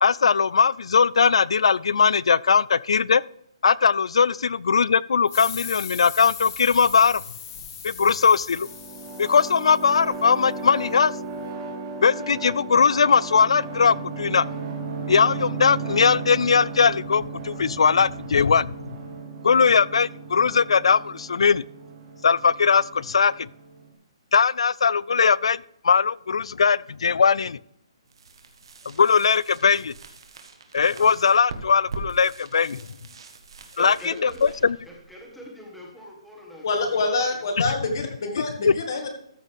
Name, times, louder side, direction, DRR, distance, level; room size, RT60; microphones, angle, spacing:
voice 1, 0.0-3.2 3.6-7.2 7.8-8.7 9.2-11.1 12.0-14.5 15.1-18.7 19.4-21.6 22.2-23.5 24.3-27.6 28.9-29.9 30.7-32.8 33.8-33.9 34.2-34.8 38.6-38.7, left 6 dB, 75° left, 22 dB, 0.3 m, -20 dB
sound 1, 5.3-10.6, left 7 dB, 25° left, 1.2 m, -39 dB
sound 2, 8.5-23.9, right 4 dB, 20° right, 1.2 m, -35 dB
sound 3, 28.0-35.8, right 3 dB, 55° right, 1.5 m, -42 dB
voice 2, 33.7-34.5 34.9-36.6 36.9-37.0, equal, ahead, -3 dB, 1.4 m, -42 dB
voice 3, 36.6-39.1, left 3 dB, 40° left, 4 dB, 1.9 m, -26 dB
14.0 x 6.4 x 3.5 m, 0.74 s
hypercardioid pair, 175°, 3 cm